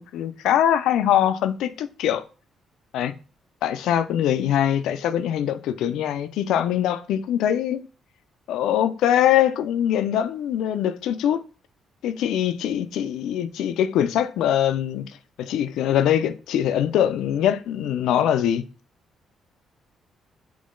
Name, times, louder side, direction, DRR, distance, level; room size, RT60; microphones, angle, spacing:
voice 1, 0.0-2.2 2.9-3.1 3.6-7.9 8.5-11.4 12.0-15.1 15.4-18.6, left 10 dB, 85° left, 0.4 m, -22 dB
3.7 x 3.0 x 3.7 m
cardioid pair, 90°, 0 cm